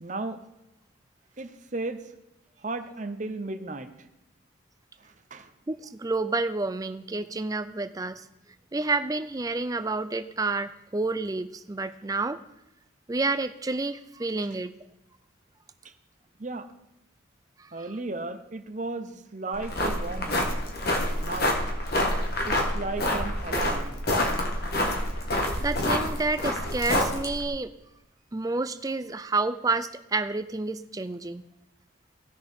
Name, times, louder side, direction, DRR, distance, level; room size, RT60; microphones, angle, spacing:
voice 1, 0.0-0.4 1.4-2.0 2.6-3.9 5.0-5.5 16.4-16.7 17.7-20.6 21.2-21.6 22.5-24.0, right 2 dB, 40° right, 9 dB, 0.7 m, -35 dB
voice 2, 5.7-8.2 8.7-12.4 13.1-14.7 17.6-17.9 25.6-27.7 28.3-31.5, right 3 dB, 20° right, 12 dB, 0.4 m, -29 dB
sound 1, 19.5-27.5, left 1 dB, 50° left, 1.6 m, -27 dB
17.5 x 6.7 x 3.6 m, 0.93 s
head